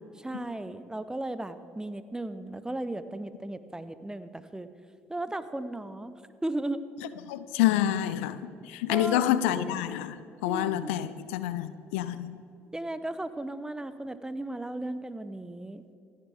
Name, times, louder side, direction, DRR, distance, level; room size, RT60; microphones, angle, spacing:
voice 1, 0.1-4.7 5.1-6.8 8.9-9.3 10.4-11.0 12.7-15.8, right 1 dB, 10° right, 12 dB, 0.9 m, -36 dB
voice 2, 7.3-10.2 10.4-12.3, left 12 dB, 70° left, 14 dB, 0.6 m, -28 dB
27.5 x 10.5 x 3.6 m, 2.6 s
figure-of-eight pair, 50°, 7 cm